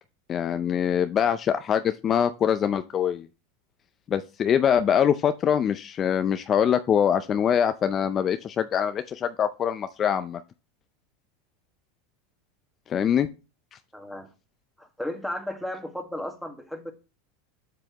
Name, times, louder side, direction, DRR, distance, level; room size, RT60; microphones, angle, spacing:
voice 1, 0.3-3.3 4.1-10.4 12.9-13.3, left 8 dB, 35° left, 10 dB, 0.5 m, -24 dB
voice 2, 13.9-14.3 14.8-16.9, left 1 dB, ahead, 4 dB, 1.7 m, -34 dB
7.7 x 6.9 x 3.0 m, 0.31 s
hypercardioid pair, 95°, 0 cm